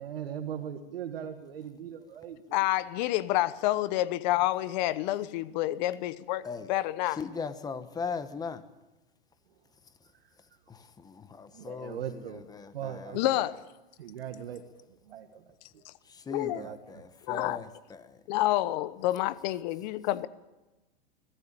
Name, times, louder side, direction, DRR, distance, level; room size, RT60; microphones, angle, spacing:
voice 1, 0.0-2.6 10.1-10.2 11.5-12.4 12.7-13.4 14.0-14.6 15.0-15.8 16.4-17.0 17.3-17.5, right 9 dB, 80° right, 6 dB, 1.8 m, -40 dB
voice 2, 2.5-7.2 13.1-13.5 15.8-15.9 16.3-16.6 17.3-17.6 18.3-20.3, left 15 dB, 50° left, 16 dB, 1.1 m, -28 dB
voice 3, 7.2-8.6 10.7-12.0 12.6-13.1 16.3-18.0, left 5 dB, 15° left, 12 dB, 1.2 m, -38 dB
22.0 x 14.5 x 8.9 m, 1.1 s
hypercardioid pair, 135°, 29 cm